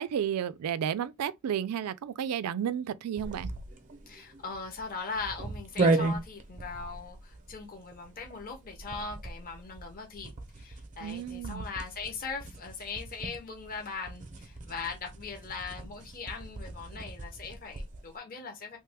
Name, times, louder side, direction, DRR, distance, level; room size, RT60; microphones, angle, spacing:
voice 1, 0.0-3.5 11.0-11.7, right 9 dB, 90° right, 0.3 m, -32 dB
sound 1, 3.2-18.1, right 3 dB, 35° right, 0.6 m, -36 dB
voice 2, 4.1-10.3 10.5-18.8, left 4 dB, 40° left, 0.7 m, -40 dB
3.2 x 2.2 x 3.3 m
head